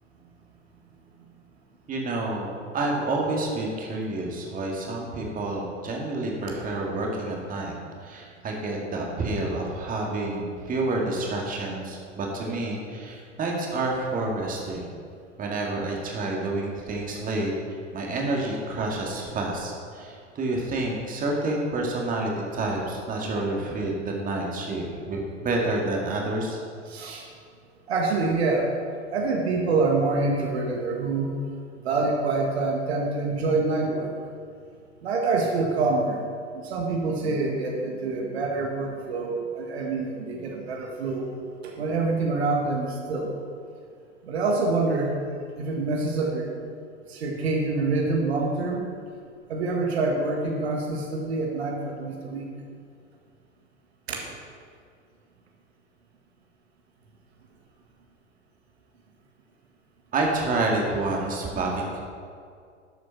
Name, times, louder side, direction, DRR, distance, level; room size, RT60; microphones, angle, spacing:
voice 1, 1.9-7.7 8.0-14.9 15.4-17.5 17.9-26.6 60.1-62.0, right 2 dB, 20° right, -1 dB, 2.1 m, -29 dB
voice 2, 26.9-27.3 27.9-28.7 29.1-31.3 31.8-34.1 35.0-36.2 36.5-41.3 41.6-43.3 44.2-45.1 45.6-46.5 47.1-48.9 49.5-52.5 54.1-54.2, right 3 dB, 60° right, 0 dB, 1.8 m, -26 dB
12.5 x 7.7 x 5.9 m, 2.2 s
figure-of-eight pair, 90°, 36 cm